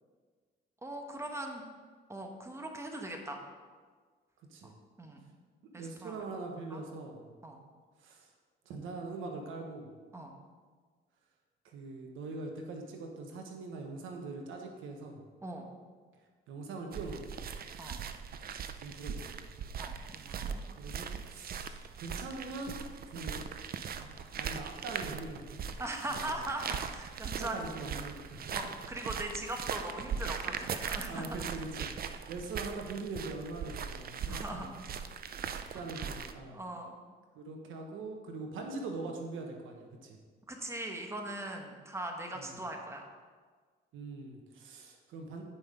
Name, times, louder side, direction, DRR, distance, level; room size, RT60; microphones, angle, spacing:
voice 1, 0.8-1.6 2.1-3.4 4.6-5.2 5.7-6.2 6.7-6.8 7.4-7.6 10.1-10.3 15.4-15.7 17.8-18.0 19.8-20.6 23.1-23.3 25.8-27.7 28.5-31.3 34.3-34.8 35.7-36.1 36.5-37.0 40.5-43.0, right 1 dB, 15° right, 2 dB, 1.3 m, -40 dB
voice 2, 5.7-7.3 8.0-8.3 8.6-9.9 11.6-15.2 16.5-17.5 18.8-19.2 20.7-22.8 23.1-23.4 24.0-25.4 25.7-25.8 26.3-26.4 27.2-28.5 28.8-28.9 29.4-29.5 31.1-34.7 35.5-36.6 37.3-40.2 42.3-42.6 43.9-45.4, right 3 dB, 85° right, 2 dB, 1.2 m, -42 dB
sound 1, 16.9-36.3, right 7 dB, 50° right, 0.5 m, -40 dB
8.9 x 5.6 x 5.0 m, 1.5 s
cardioid pair, 90°, 20 cm